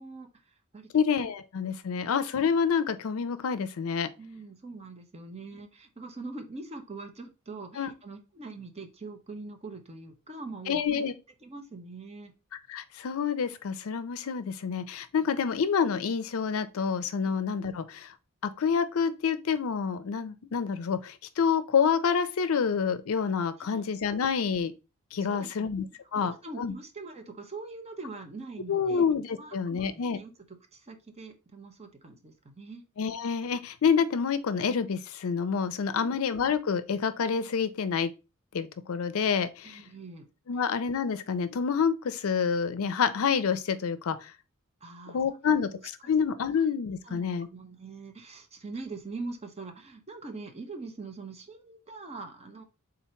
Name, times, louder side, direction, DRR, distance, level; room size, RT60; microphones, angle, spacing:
voice 1, 0.0-0.9 4.2-11.0 11.4-12.3 17.2-17.3 23.6-23.9 25.2-25.7 26.1-29.1 29.4-30.3 30.7-32.8 35.9-36.2 39.6-40.3 44.8-45.6 46.0-46.1 47.0-52.6, right 3 dB, 30° right, 0.8 m, -43 dB
voice 2, 0.9-4.1 7.8-7.9 10.7-11.1 12.7-18.1 18.4-24.7 25.1-25.8 26.1-26.7 28.7-30.2 33.0-38.1 38.5-39.8 40.5-44.3 45.1-45.7 46.1-47.5, left 6 dB, 70° left, 0.5 m, -28 dB
3.8 x 2.8 x 4.3 m
head